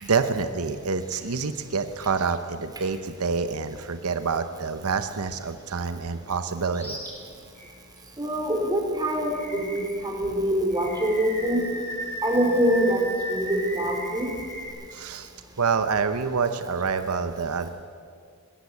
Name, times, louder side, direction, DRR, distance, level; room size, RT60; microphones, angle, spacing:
voice 1, 0.0-7.0 14.9-15.3 15.6-17.7, right 5 dB, 80° right, 10 dB, 0.8 m, -27 dB
Animal, 6.7-7.1 7.6-7.7 9.3-10.1 10.7-14.7, equal, 10° left, 6.4 m, -36 dB
voice 2, 8.2-11.6 12.2-13.0 13.3-14.3, equal, 20° right, 1 dB, 3.9 m, -24 dB
20.5 x 16.5 x 8.4 m, 2.2 s
head